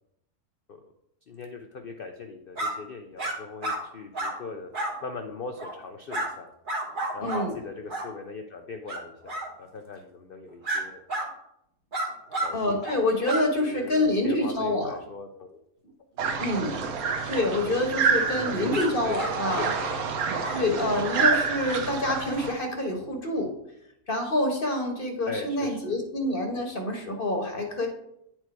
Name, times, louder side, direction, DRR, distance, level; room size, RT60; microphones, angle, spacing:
voice 1, 1.3-4.7 5.0-6.5 7.1-11.3 12.4-12.8 13.5-15.6 18.3-20.1 25.3-25.9, left 4 dB, 70° left, 5 dB, 0.5 m, -39 dB
sound 1, 2.5-2.7 3.2-3.3 3.6-3.8 4.1-4.3 4.7-4.9 5.6-5.8 6.1-6.3 6.7-7.4 7.9-8.1 8.9-9.0 9.3-9.5 10.6-10.8 11.1-11.3 11.9-12.5 12.8-13.0 13.2-13.4 18.7-18.9 19.2-19.9 20.4-20.6 21.1-21.3, right 2 dB, 35° right, 1.3 m, -31 dB
voice 2, 7.2-7.5 12.5-14.9 16.4-16.8 17.3-19.7 20.5-23.5 24.1-27.9, left 1 dB, 40° left, 3 dB, 1.1 m, -27 dB
sound 2, 16.2-22.5, right 5 dB, 65° right, 1.2 m, -28 dB
9.6 x 4.5 x 4.5 m, 0.79 s
omnidirectional pair, 1.7 m